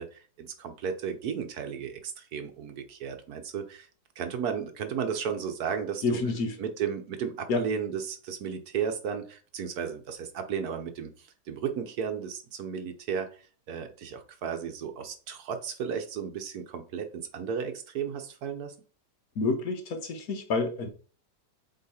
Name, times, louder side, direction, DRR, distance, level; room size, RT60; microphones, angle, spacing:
voice 1, 0.0-3.9 4.2-6.2 6.6-13.3 13.7-18.7, right 7 dB, 65° right, 1.2 m, -34 dB
voice 2, 6.0-6.5 7.5-7.6 19.4-20.9, left 3 dB, 60° left, 1.3 m, -28 dB
7.8 x 3.1 x 4.2 m
omnidirectional pair, 1.9 m